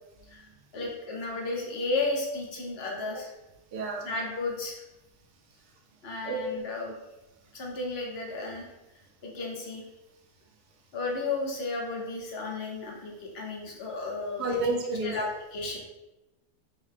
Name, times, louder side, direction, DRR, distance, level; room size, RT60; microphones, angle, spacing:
voice 1, 0.7-3.3 4.0-4.8 6.0-6.9 7.5-8.7 9.2-9.8 10.9-14.7 15.0-15.8, left 3 dB, 45° left, -1 dB, 1.0 m, -33 dB
voice 2, 3.7-4.1 6.3-6.5 14.4-15.1, right 2 dB, 70° right, 1 dB, 1.3 m, -30 dB
6.4 x 2.2 x 3.4 m, 0.99 s
omnidirectional pair, 1.8 m